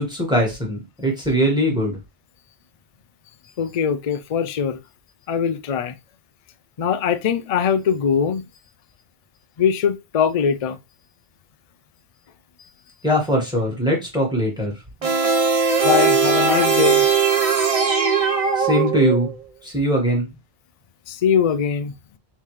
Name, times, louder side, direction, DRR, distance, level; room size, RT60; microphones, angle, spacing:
voice 1, 0.0-2.0 13.0-14.7 15.0-15.1 18.5-19.3 19.6-20.3, equal, 5° right, 1.6 m, -21 dB
voice 2, 3.6-4.8 5.3-6.0 6.8-8.4 9.6-10.8 12.6-12.7 15.8-17.1 21.1-21.9, left 7 dB, 50° left, 0.4 m, -21 dB
sound 1, 15.0-19.4, right 5 dB, 35° right, 0.9 m, -19 dB
4.1 x 3.7 x 3.2 m
omnidirectional pair, 1.1 m